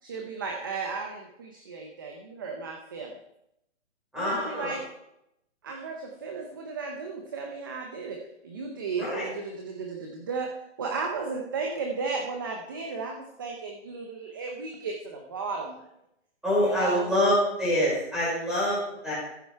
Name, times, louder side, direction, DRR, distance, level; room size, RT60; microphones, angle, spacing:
voice 1, 0.0-3.2 4.2-4.9 5.6-15.8 16.6-17.1, right 4 dB, 20° right, 2 dB, 0.6 m, -34 dB
voice 2, 4.1-4.7 9.0-9.2 16.4-19.1, equal, ahead, -8 dB, 4.9 m, -26 dB
14.0 x 8.1 x 4.6 m, 0.82 s
hypercardioid pair, 170°, 35 cm